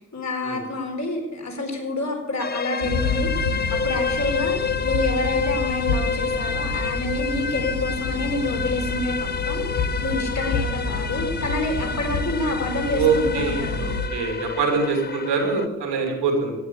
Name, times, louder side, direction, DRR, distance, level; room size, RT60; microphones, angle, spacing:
voice 1, 0.0-14.0 14.6-14.8, left 2 dB, 40° left, 1 dB, 4.4 m, -28 dB
sound 1, 2.4-15.7, left 5 dB, 25° left, 0.7 m, -29 dB
sound 2, 2.8-14.1, left 3 dB, 85° left, 1.4 m, -29 dB
voice 2, 12.9-16.5, right 4 dB, 80° right, 2 dB, 2.9 m, -24 dB
14.0 x 9.1 x 7.1 m, 1.1 s
hypercardioid pair, 45°, 41 cm